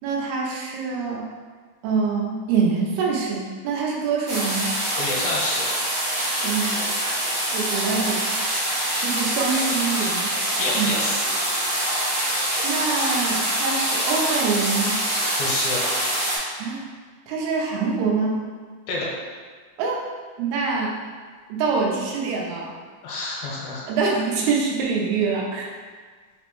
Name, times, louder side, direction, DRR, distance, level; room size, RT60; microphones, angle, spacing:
voice 1, 0.0-1.3 1.8-4.7 6.4-6.8 7.5-8.3 9.0-10.4 10.7-10.9 12.6-15.0 16.6-16.8 17.3-18.4 19.8-20.0 20.4-21.0 21.5-22.8 23.9-25.7, right 5 dB, 85° right, -1 dB, 2.6 m, -25 dB
sound 1, 4.3-16.4, right 1 dB, 65° right, 1.3 m, -25 dB
voice 2, 4.9-5.7 10.6-11.2 15.4-15.9 18.9-19.1 23.0-23.9, left 2 dB, 85° left, -4 dB, 2.4 m, -28 dB
6.0 x 2.1 x 2.9 m, 1.5 s
omnidirectional pair, 4.4 m